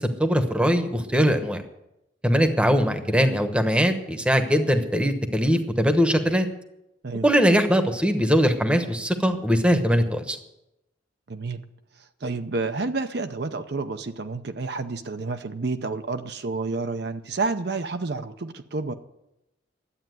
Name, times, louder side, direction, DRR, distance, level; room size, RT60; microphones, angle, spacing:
voice 1, 0.0-1.6 2.2-6.5 7.2-10.4, equal, 5° right, 7 dB, 1.0 m, -21 dB
voice 2, 11.3-11.6 12.2-18.9, right 3 dB, 55° right, 8 dB, 0.7 m, -29 dB
11.5 x 8.6 x 9.2 m, 0.88 s
head